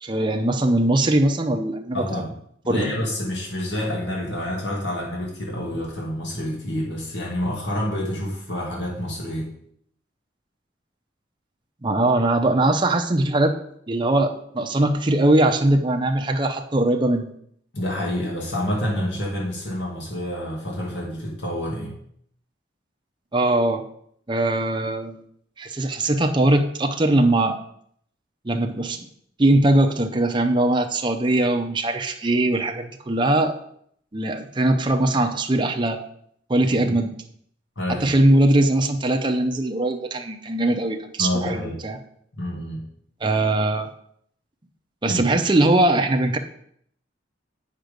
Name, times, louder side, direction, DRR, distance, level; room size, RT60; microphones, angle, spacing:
voice 1, 0.0-2.0 2.7-2.9 11.8-13.6 13.9-17.3 23.3-23.8 24.3-25.2 25.6-27.6 28.4-29.0 29.4-33.6 34.1-36.0 36.5-37.1 38.0-42.0 43.2-43.9 45.0-46.4, right 1 dB, 25° right, 4 dB, 0.6 m, -21 dB
voice 2, 1.9-2.3 2.6-9.5 17.7-21.9 36.8-36.9 37.8-38.1 41.2-41.8 42.3-42.8 45.1-45.2, left 1 dB, 70° left, -3 dB, 2.1 m, -28 dB
7.8 x 5.8 x 5.1 m, 0.67 s
head